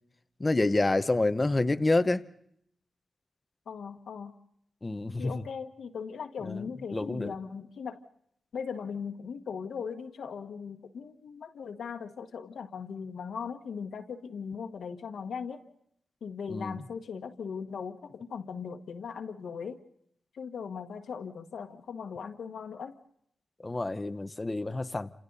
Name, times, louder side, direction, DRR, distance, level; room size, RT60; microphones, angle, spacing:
voice 1, 0.4-2.3 4.8-5.4 6.4-7.3 16.5-16.8 23.6-25.1, left 2 dB, 20° left, 0.9 m, -28 dB
voice 2, 3.7-4.3 5.2-8.0 8.5-15.6 16.2-19.8 20.3-22.9, left 6 dB, 75° left, 1.6 m, -39 dB
29.0 x 27.5 x 4.1 m
wide cardioid pair, 135°, 0 cm